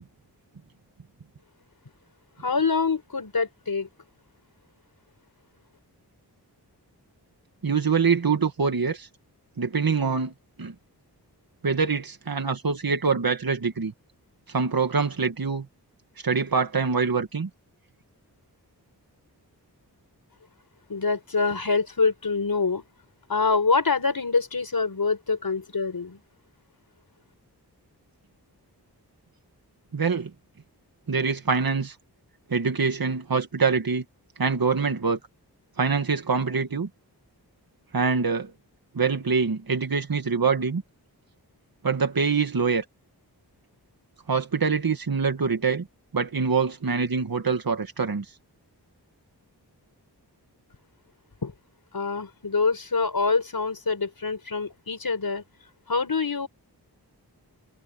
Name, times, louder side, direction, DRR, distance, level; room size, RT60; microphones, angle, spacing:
voice 1, 2.4-3.9 20.9-22.8 23.3-26.2 51.4-51.5 51.9-55.4 55.9-56.5, left 4 dB, 60° left, 4.3 m, -25 dB
voice 2, 7.6-9.1 9.6-10.3 10.6-10.7 11.6-13.9 14.5-15.7 16.2-17.5 29.9-30.3 31.1-32.0 32.5-34.0 34.4-35.2 35.8-36.9 37.9-38.5 38.9-40.8 41.8-42.8 44.3-45.8 46.1-48.3, right 5 dB, 60° right, 1.9 m, -24 dB
wide cardioid pair, 55°, 40 cm